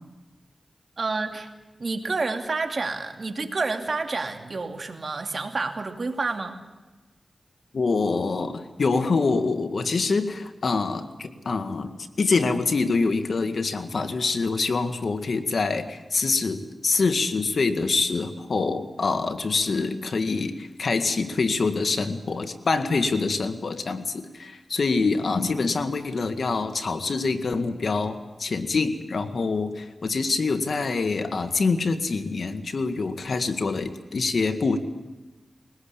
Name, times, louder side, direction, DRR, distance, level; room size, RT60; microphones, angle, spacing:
voice 1, 1.0-1.5 1.8-6.6, right 3 dB, 60° right, 4 dB, 2.6 m, -29 dB
voice 2, 7.7-34.8, left 4 dB, 70° left, 8 dB, 1.8 m, -25 dB
22.0 x 19.5 x 8.6 m, 1.1 s
cardioid pair, 45°, 0 cm